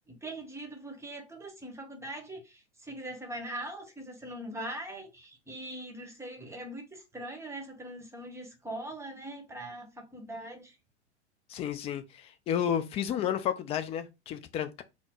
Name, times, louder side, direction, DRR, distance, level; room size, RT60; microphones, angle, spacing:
voice 1, 0.1-10.7, right 1 dB, 10° right, 1.0 m, -41 dB
voice 2, 11.5-14.8, left 9 dB, 20° left, 0.4 m, -32 dB
4.1 x 2.0 x 4.4 m
hypercardioid pair, 100°, 34 cm